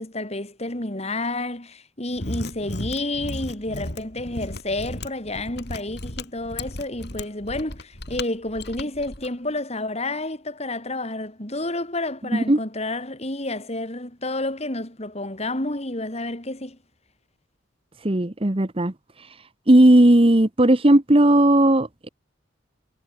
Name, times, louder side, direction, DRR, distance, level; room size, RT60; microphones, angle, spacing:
voice 1, 0.0-16.8, left 2 dB, 30° left, 3.2 m, -30 dB
Mechanisms, 2.1-9.3, left 1 dB, 55° left, 6.3 m, -35 dB
voice 2, 18.0-18.9 19.7-22.1, right 1 dB, 30° right, 1.1 m, -16 dB
head